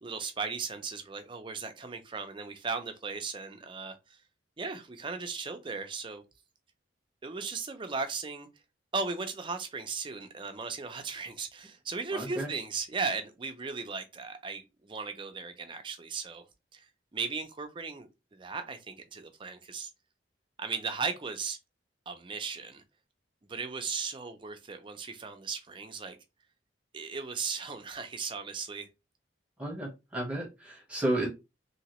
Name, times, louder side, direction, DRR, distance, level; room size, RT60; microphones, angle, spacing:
voice 1, 0.0-4.2 4.6-6.2 7.2-8.5 8.9-16.4 16.7-16.9 17.1-19.9 20.6-21.6 22.1-22.8 23.5-26.2 26.9-28.9, right 4 dB, 25° right, 0.5 m, -37 dB
voice 2, 12.1-12.5 29.6-31.3, right 1 dB, 5° right, 1.0 m, -32 dB
2.9 x 2.8 x 2.9 m
head